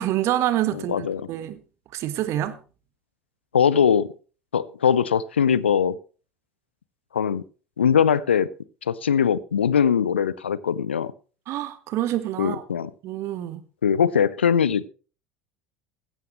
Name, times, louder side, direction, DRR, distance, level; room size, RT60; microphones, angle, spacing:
voice 1, 0.0-1.6 1.9-2.6 11.5-12.6 13.0-13.6, right 13 dB, 50° right, 1.4 m, -27 dB
voice 2, 0.7-1.3 3.5-4.1 4.5-6.0 7.1-7.4 7.8-8.5 8.9-11.1 12.4-12.9 13.8-14.9, left 7 dB, 80° left, 0.6 m, -21 dB
15.5 x 12.5 x 3.2 m
figure-of-eight pair, 65°, 6 cm